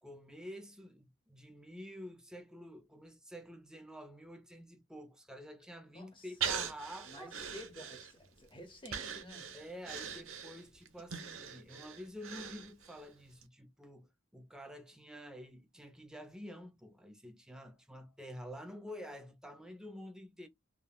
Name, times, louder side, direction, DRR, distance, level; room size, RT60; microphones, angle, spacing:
voice 1, 0.0-7.3 9.5-20.5, equal, 5° right, 0.5 m, -49 dB
voice 2, 5.9-6.3 7.0-9.6, left 1 dB, 25° left, 0.9 m, -51 dB
Breathing, 6.4-8.4 8.9-13.0 13.4-13.5, right 7 dB, 90° right, 0.8 m, -41 dB
3.5 x 2.2 x 2.2 m
head